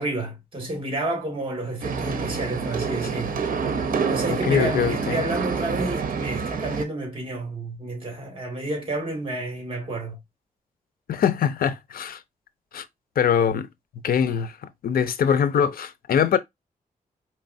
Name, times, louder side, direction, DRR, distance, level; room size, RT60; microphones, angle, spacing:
voice 1, 0.0-3.4 3.8-10.2, right 2 dB, 35° right, 1.9 m, -30 dB
sound 1, 1.8-6.8, right 5 dB, 75° right, 0.7 m, -27 dB
voice 2, 4.3-5.2 11.1-12.2 12.7-12.8 13.2-13.7 14.0-14.6 14.8-16.4, left 8 dB, 90° left, 0.6 m, -22 dB
4.5 x 3.2 x 2.6 m
wide cardioid pair, 145°, 15 cm